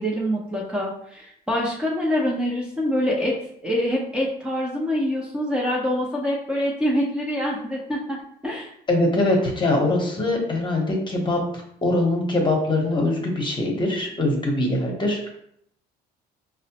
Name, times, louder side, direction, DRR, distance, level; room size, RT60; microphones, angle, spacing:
voice 1, 0.0-3.3 3.6-8.2 8.4-8.7, equal, 5° right, -4 dB, 0.7 m, -25 dB
voice 2, 8.9-11.4 11.8-15.3, left 2 dB, 30° left, 1 dB, 0.9 m, -22 dB
4.7 x 2.0 x 2.8 m, 0.70 s
cardioid pair, 110°, 17 cm